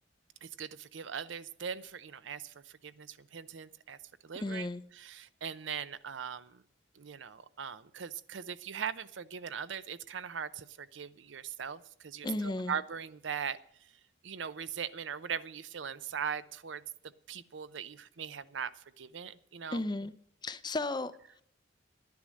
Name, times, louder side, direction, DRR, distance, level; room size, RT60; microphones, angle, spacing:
voice 1, 0.4-4.0 4.2-4.7 5.0-6.6 6.9-13.6 14.2-16.8 17.3-19.8, right 7 dB, 75° right, 0.6 m, -40 dB
voice 2, 4.3-4.8 12.2-12.8 19.7-20.1 20.4-21.4, left 2 dB, 20° left, 0.5 m, -35 dB
11.5 x 10.5 x 6.3 m
head